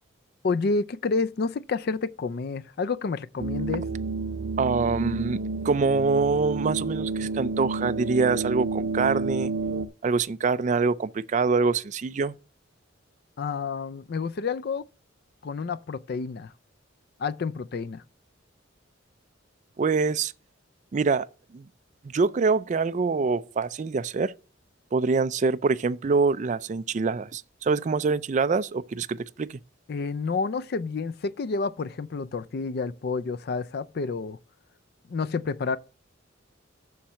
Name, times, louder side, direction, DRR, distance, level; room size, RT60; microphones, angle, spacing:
voice 1, 0.4-3.8 13.4-14.8 15.4-16.5 17.2-18.0 29.9-34.4 35.1-35.8, left 4 dB, 50° left, 0.4 m, -29 dB
sound 1, 3.4-9.9, right 3 dB, 85° right, 0.6 m, -30 dB
voice 2, 4.6-9.5 10.0-12.3 19.8-20.3 20.9-21.3 21.5-21.7 22.0-24.3 24.9-29.6, right 4 dB, 40° right, 0.4 m, -25 dB
7.2 x 5.8 x 6.2 m
head